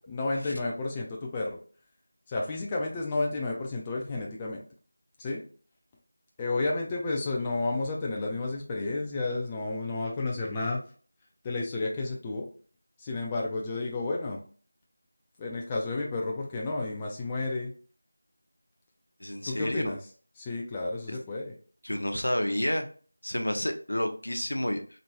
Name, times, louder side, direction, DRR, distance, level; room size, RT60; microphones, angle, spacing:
voice 1, 0.1-1.6 2.3-4.6 5.2-5.4 6.4-10.8 11.4-12.5 13.0-14.4 15.4-17.7 19.5-20.0 20.4-21.5, left 2 dB, 15° left, -1 dB, 0.3 m, -31 dB
voice 2, 19.2-19.9 21.1-21.2 21.8-22.9 23.2-24.8, left 1 dB, 70° left, 5 dB, 0.6 m, -30 dB
3.0 x 2.5 x 2.7 m, 0.42 s
figure-of-eight pair, 170°, 0 cm